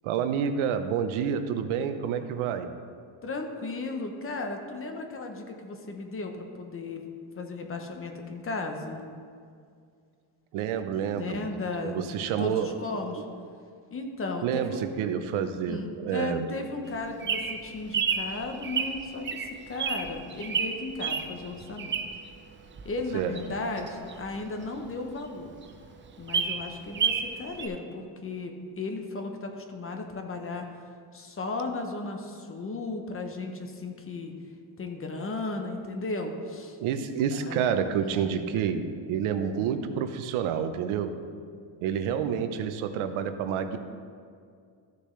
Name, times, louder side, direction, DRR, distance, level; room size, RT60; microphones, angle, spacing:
voice 1, 0.0-2.7 10.5-11.4 11.8-12.7 12.9-13.1 14.4-16.5 23.1-23.3 36.8-41.1 41.8-43.8, right 8 dB, 80° right, 8 dB, 0.8 m, -29 dB
voice 2, 3.2-7.0 7.3-9.0 11.2-13.2 13.9-14.8 15.7-21.9 22.8-25.5 26.2-30.7 31.1-34.3 34.8-36.8 37.5-37.7 38.0-38.3, left 3 dB, 25° left, 4 dB, 0.8 m, -35 dB
Bird vocalization bird call bird song, 16.9-22.3 22.8-24.9 25.3-25.4 25.6-25.7 26.1-27.3 27.6-27.7, right 6 dB, 25° right, 0.6 m, -30 dB
14.0 x 6.7 x 3.2 m, 2.2 s
cardioid pair, 145°, 49 cm